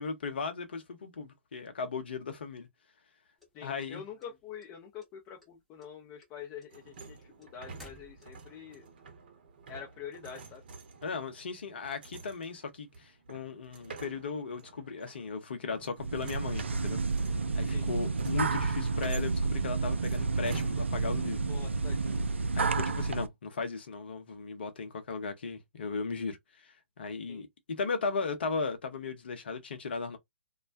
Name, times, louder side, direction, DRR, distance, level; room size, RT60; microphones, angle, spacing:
voice 1, 0.0-2.7 3.6-4.0 11.0-17.0 17.5-21.5 22.5-30.2, left 4 dB, 60° left, 0.8 m, -37 dB
sound 1, 3.4-4.7 5.0-5.5 5.8-8.6, equal, ahead, 0.9 m, -55 dB
voice 2, 3.5-8.8 9.7-10.6 17.7-17.9 21.5-22.2 27.3-27.4, left 8 dB, 25° left, 0.6 m, -46 dB
sound 2, 6.7-21.3, right 4 dB, 50° right, 0.8 m, -49 dB
sound 3, 16.0-23.3, right 4 dB, 75° right, 0.4 m, -30 dB
2.3 x 2.1 x 2.5 m
figure-of-eight pair, 125°, 6 cm